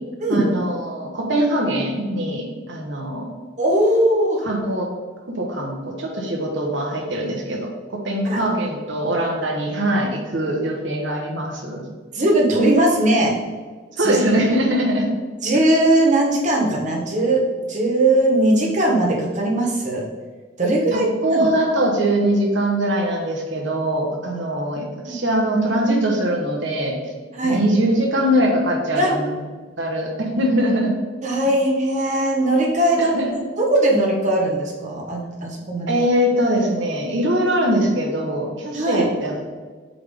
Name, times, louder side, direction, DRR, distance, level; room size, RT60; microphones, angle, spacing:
voice 1, 0.3-3.3 4.4-4.9 5.3-11.8 14.0-15.1 15.5-15.6 20.9-27.0 27.4-29.4 29.8-30.9 33.0-33.3 35.9-39.5, right 1 dB, 70° right, 0 dB, 1.3 m, -22 dB
voice 2, 3.6-4.4 8.2-8.4 12.1-13.4 14.0-14.2 15.4-17.4 17.7-20.0 20.6-21.5 25.1-25.2 27.3-27.6 28.9-29.1 31.2-33.1 33.6-35.9 38.7-39.1, right 1 dB, 40° right, -1 dB, 1.3 m, -19 dB
7.7 x 3.6 x 3.7 m, 1.4 s
head